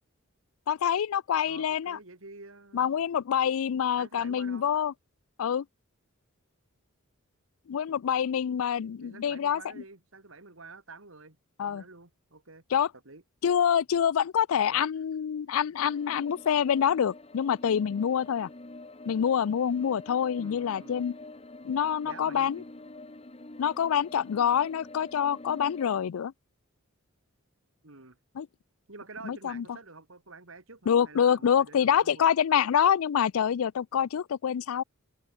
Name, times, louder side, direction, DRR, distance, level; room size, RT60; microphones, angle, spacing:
voice 1, 0.7-2.0 2.7-4.9 5.4-5.6 7.7-9.6 11.6-11.8 12.7-12.9 13.4-18.5 19.1-21.1 21.6-22.6 23.6-26.3 28.4-28.5 29.2-29.6 30.9-34.8, left 8 dB, 75° left, 0.4 m, -26 dB
voice 2, 1.5-3.1 4.0-4.8 9.0-11.4 11.6-12.6 13.0-13.2 14.7-14.9 20.4-21.0 22.0-22.5 27.8-28.2 28.9-32.3, right 3 dB, 65° right, 2.6 m, -48 dB
sound 1, 15.7-26.0, left 2 dB, 30° left, 1.3 m, -47 dB
head